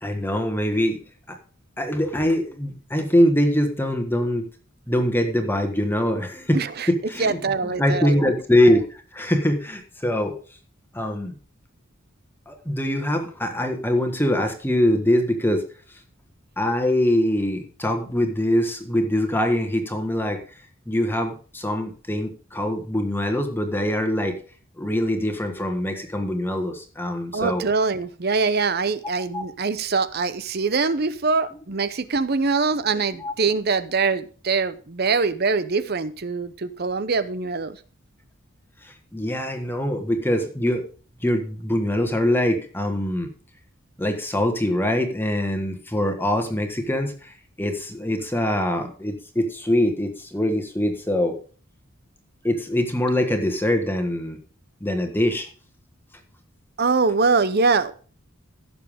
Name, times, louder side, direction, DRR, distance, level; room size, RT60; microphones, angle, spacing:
voice 1, 0.0-1.0 1.3-1.4 1.8-4.5 4.9-10.4 10.9-11.4 12.5-16.0 16.6-24.4 24.8-27.6 29.3-29.4 33.1-33.3 38.8-40.8 41.2-43.3 44.0-51.4 52.4-54.4 54.8-55.5, left 1 dB, 10° left, 5 dB, 1.4 m, -23 dB
voice 2, 6.5-6.9 7.2-8.2 27.3-37.8 56.8-57.9, right 4 dB, 50° right, 14 dB, 0.7 m, -23 dB
16.0 x 7.0 x 3.6 m, 0.40 s
head